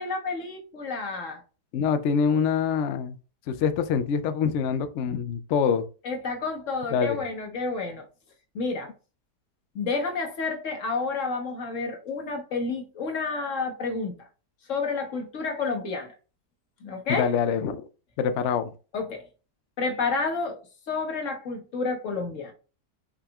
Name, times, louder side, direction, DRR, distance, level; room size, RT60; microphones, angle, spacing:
voice 1, 0.0-1.4 6.0-8.0 8.5-8.9 9.7-14.1 14.7-16.1 16.8-17.3 18.9-19.2 19.8-22.5, left 4 dB, 50° left, 1.4 m, -30 dB
voice 2, 1.7-3.2 3.5-5.8 6.9-7.2 17.1-17.8 18.2-18.7, left 6 dB, 80° left, 0.6 m, -25 dB
5.7 x 4.0 x 2.4 m
omnidirectional pair, 1.8 m